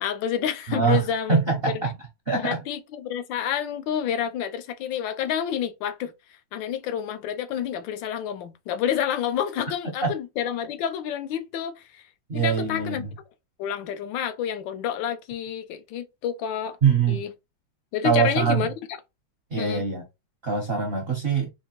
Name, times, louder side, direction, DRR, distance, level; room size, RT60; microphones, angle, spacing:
voice 1, 0.0-1.4 2.4-6.1 6.5-12.0 12.3-13.0 13.6-16.8 17.1-17.3 17.9-18.7 19.6-19.8, left 9 dB, 80° left, 1.3 m, -29 dB
voice 2, 0.7-2.0 2.3-2.6 10.0-10.1 12.3-13.1 16.8-17.2 18.0-18.6 19.5-20.0 20.4-21.5, right 6 dB, 60° right, 0.6 m, -23 dB
4.5 x 2.5 x 2.9 m
omnidirectional pair, 2.0 m